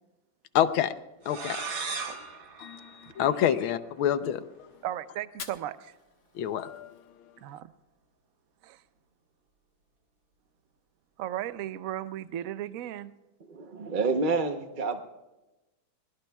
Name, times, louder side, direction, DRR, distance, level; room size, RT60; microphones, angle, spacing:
voice 1, 0.5-0.9 1.3-2.2 2.6-4.4 6.4-6.9, left 10 dB, 90° left, 11 dB, 1.6 m, -28 dB
sound 1, 1.2-3.8, right 5 dB, 70° right, 2.5 m, -38 dB
voice 2, 4.8-5.9 7.4-7.7 8.6-8.8 11.2-13.1, right 12 dB, 85° right, 13 dB, 0.7 m, -36 dB
Fire, 5.2-7.3, left 6 dB, 60° left, 1.8 m, -47 dB
voice 3, 13.4-15.0, right 4 dB, 40° right, 6 dB, 0.7 m, -28 dB
23.5 x 21.0 x 2.3 m, 1.0 s
omnidirectional pair, 2.2 m